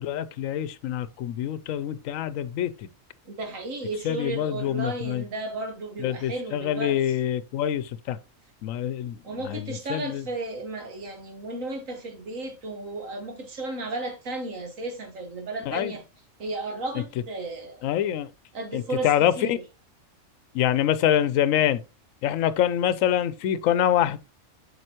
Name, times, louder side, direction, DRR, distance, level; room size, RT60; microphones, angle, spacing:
voice 1, 0.0-2.9 4.0-5.2 6.0-8.2 8.6-9.2 9.4-10.2 15.7-15.9 17.8-18.3 18.7-19.6 20.5-21.8 22.2-24.2, left 11 dB, 85° left, 1.0 m, -25 dB
voice 2, 3.2-7.0 9.2-16.0 16.4-17.8 18.5-19.6, right 2 dB, 80° right, 1.7 m, -34 dB
7.7 x 5.5 x 2.9 m
omnidirectional pair, 1.4 m